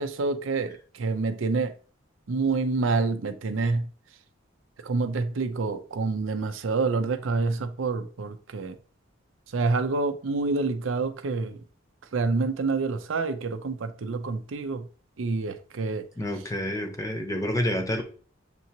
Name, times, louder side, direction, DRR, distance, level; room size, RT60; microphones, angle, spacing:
voice 1, 0.0-1.8 2.3-3.9 4.8-8.8 9.5-11.6 12.1-14.9 15.2-16.1, right 3 dB, 80° right, 0.5 m, -27 dB
voice 2, 16.2-18.0, left 1 dB, 15° left, 0.8 m, -28 dB
6.7 x 2.7 x 2.8 m
head